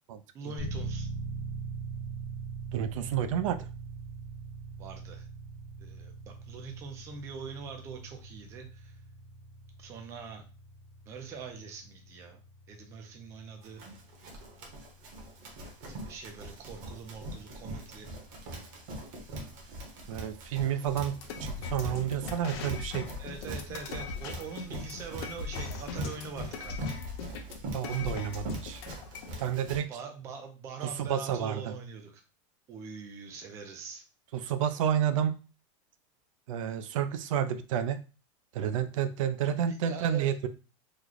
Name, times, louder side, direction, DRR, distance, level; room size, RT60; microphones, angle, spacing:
voice 1, 0.3-1.1 4.8-5.3 5.8-9.0 9.8-10.4 11.1-12.4 12.7-13.8 15.9-18.1 23.2-27.0 29.9-32.2 32.7-34.0 39.7-40.3, right 5 dB, 15° right, 4 dB, 0.4 m, -43 dB
sound 1, 0.6-17.3, right 4 dB, 30° left, 0.9 m, -43 dB
voice 2, 2.7-3.7 20.1-23.1 27.7-28.8 29.4-29.9 30.8-31.7 34.3-35.4 36.5-38.0 38.5-40.5, right 9 dB, 75° right, 10 dB, 0.4 m, -30 dB
Run, 13.6-29.8, right 1 dB, 40° right, 0.8 m, -42 dB
sound 2, 20.9-29.3, left 5 dB, 50° left, 0.6 m, -40 dB
3.1 x 2.1 x 3.7 m, 0.33 s
supercardioid pair, 180°, 17 cm